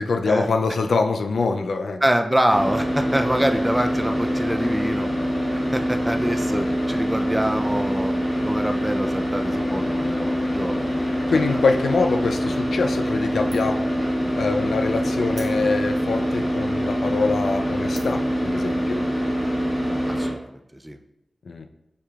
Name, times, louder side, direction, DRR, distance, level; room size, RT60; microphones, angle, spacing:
voice 1, 0.0-2.0 6.3-6.7 11.3-13.8 14.4-19.0 21.5-21.7, left 4 dB, 90° left, 6 dB, 0.3 m, -24 dB
voice 2, 2.0-5.1 5.7-8.1 8.4-11.0 11.3-11.6 20.1-21.0, right 1 dB, 10° right, 6 dB, 0.4 m, -25 dB
Car / Idling, 2.5-20.3, equal, 45° left, 1.4 m, -24 dB
sound 1, 12.9-13.3 13.5-13.9 14.3-14.4 15.3-16.0 16.6-16.7 17.3-17.5 17.9-18.3, right 3 dB, 75° right, 1.0 m, -45 dB
6.5 x 2.8 x 2.3 m, 0.82 s
wide cardioid pair, 80°, 0 cm